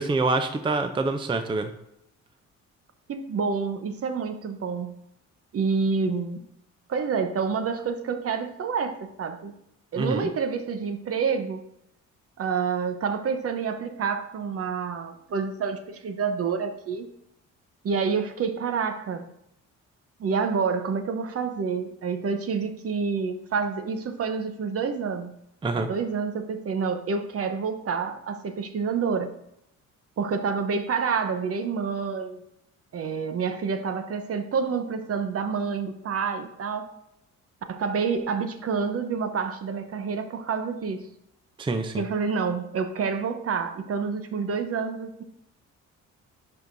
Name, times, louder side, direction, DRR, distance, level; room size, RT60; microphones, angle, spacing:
voice 1, 0.0-1.7 10.0-10.3 25.6-25.9 41.6-42.1, right 3 dB, 15° right, 8 dB, 0.5 m, -26 dB
voice 2, 3.1-4.9 5.5-6.4 6.9-9.5 9.9-11.6 12.4-17.1 17.8-19.3 20.2-25.3 25.7-29.3 30.2-32.4 32.9-36.9 37.7-41.1 42.0-45.2, right 5 dB, 50° right, 8 dB, 0.8 m, -28 dB
11.0 x 4.7 x 2.6 m, 0.80 s
cardioid pair, 90°, 30 cm